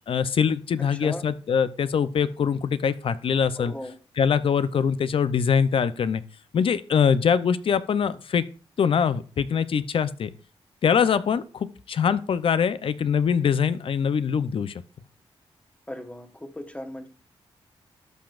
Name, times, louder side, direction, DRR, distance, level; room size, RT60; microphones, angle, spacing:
voice 1, 0.1-3.7 4.2-6.2 6.5-8.4 8.8-10.3 10.8-14.8, left 7 dB, 60° left, 0.6 m, -23 dB
voice 2, 0.8-1.3 3.6-3.9 15.9-17.1, left 1 dB, 10° left, 1.2 m, -37 dB
13.5 x 5.9 x 2.5 m
cardioid pair, 75°, 10 cm